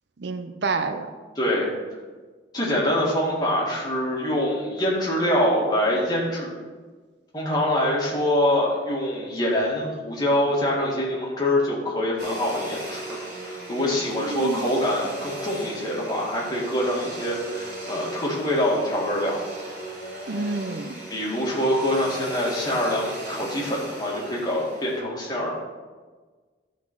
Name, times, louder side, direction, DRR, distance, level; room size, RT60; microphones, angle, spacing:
voice 1, 0.2-1.1 14.1-14.6 20.3-20.9, right 3 dB, 65° right, 8 dB, 0.6 m, -28 dB
voice 2, 1.4-1.7 2.5-6.5 7.3-19.4 21.1-25.5, left 1 dB, 20° left, -4 dB, 2.0 m, -25 dB
Domestic sounds home sounds, 12.2-25.0, right 2 dB, 50° right, 3.0 m, -37 dB
12.0 x 4.1 x 6.0 m, 1.4 s
head